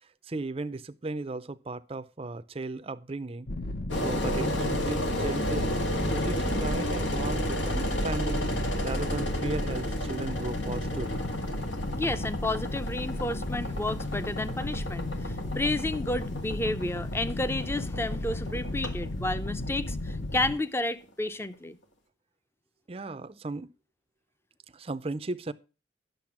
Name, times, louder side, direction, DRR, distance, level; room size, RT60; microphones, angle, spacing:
voice 1, 0.2-3.5 4.0-5.8 6.1-8.4 8.8-11.2 22.9-23.7 24.7-25.5, right 2 dB, 30° right, 0.5 m, -36 dB
sound 1, 3.5-20.5, left 2 dB, 50° left, 0.8 m, -34 dB
Engine, 3.9-20.8, equal, 90° left, 1.9 m, -33 dB
voice 2, 11.9-21.8, left 2 dB, 15° left, 0.6 m, -31 dB
10.5 x 6.8 x 5.9 m
head